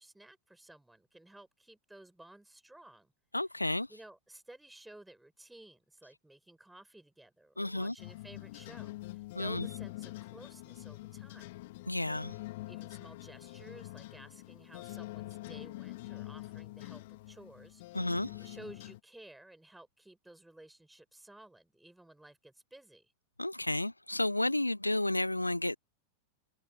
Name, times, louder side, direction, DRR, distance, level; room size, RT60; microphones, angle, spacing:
voice 1, 0.0-3.1 3.9-11.5 12.6-18.1 18.4-23.1, right 1 dB, 5° right, 7.5 m, -55 dB
voice 2, 3.3-3.9 7.6-7.9 9.3-9.7 11.9-12.4 17.9-18.5 23.4-25.8, left 1 dB, 85° left, 0.5 m, -32 dB
sound 1, 8.0-19.0, left 19 dB, 50° left, 2.9 m, -45 dB
figure-of-eight pair, 90°, 0 cm